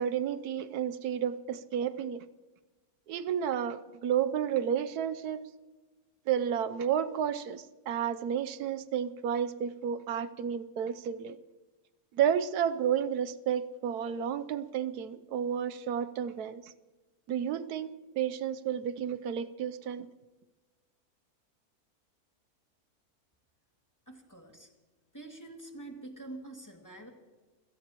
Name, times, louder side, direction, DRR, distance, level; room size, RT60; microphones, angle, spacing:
voice 1, 0.0-2.2 3.1-5.5 6.3-11.4 12.1-16.6 17.3-17.9 18.2-20.1, right 9 dB, 85° right, 12 dB, 1.2 m, -31 dB
voice 2, 24.1-24.7 25.1-27.1, right 2 dB, 10° left, 1 dB, 2.2 m, -46 dB
28.0 x 17.5 x 3.0 m, 1.2 s
omnidirectional pair, 1.6 m